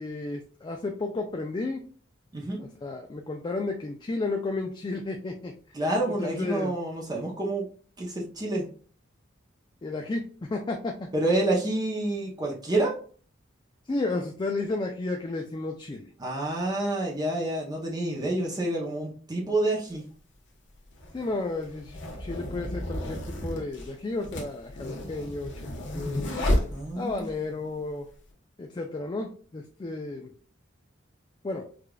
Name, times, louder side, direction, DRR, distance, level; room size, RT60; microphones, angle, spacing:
voice 1, 0.0-1.8 2.6-5.5 6.2-6.7 9.8-11.1 13.9-16.1 21.1-26.4 27.0-28.1 28.6-30.3 31.4-31.7, left 2 dB, 25° left, 3 dB, 0.3 m, -32 dB
voice 2, 5.7-7.7 8.0-8.6 11.1-13.0 16.2-20.0 26.7-27.2, right 2 dB, 20° right, -2 dB, 0.6 m, -28 dB
sound 1, 19.9-20.0 20.9-27.3, left 1 dB, 65° left, 1.0 m, -31 dB
4.8 x 2.4 x 2.3 m, 0.43 s
head